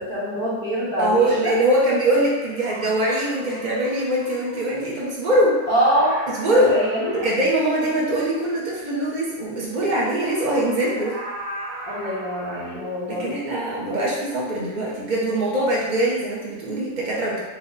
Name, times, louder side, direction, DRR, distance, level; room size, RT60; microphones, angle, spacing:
voice 1, 0.0-1.5 5.7-6.2 6.7-7.3 8.1-8.2 11.9-13.4 13.9-14.1, equal, 60° left, -11 dB, 1.7 m, -24 dB
voice 2, 1.0-5.6 6.3-6.7 7.2-11.2 13.1-17.4, right 1 dB, 35° right, -5 dB, 0.8 m, -22 dB
sound 1, 2.3-4.8 5.8-7.3 9.9-12.8, equal, 75° right, 1.7 m, -37 dB
4.6 x 2.3 x 3.9 m, 1.3 s
omnidirectional pair, 2.0 m